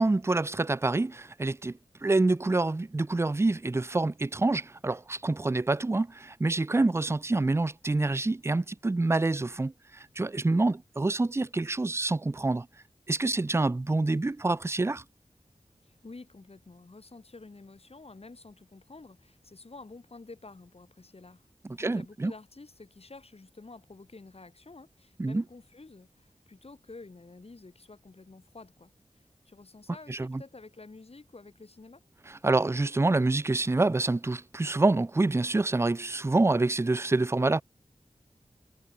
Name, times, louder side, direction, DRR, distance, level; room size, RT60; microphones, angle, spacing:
voice 1, 0.0-12.7 13.1-15.0 21.6-22.3 25.2-25.4 30.1-30.4 32.3-37.6, right 2 dB, 20° right, 0.4 m, -27 dB
voice 2, 15.8-21.4 21.7-32.0, left 3 dB, 50° left, 2.1 m, -50 dB
wide cardioid pair, 70°, 13 cm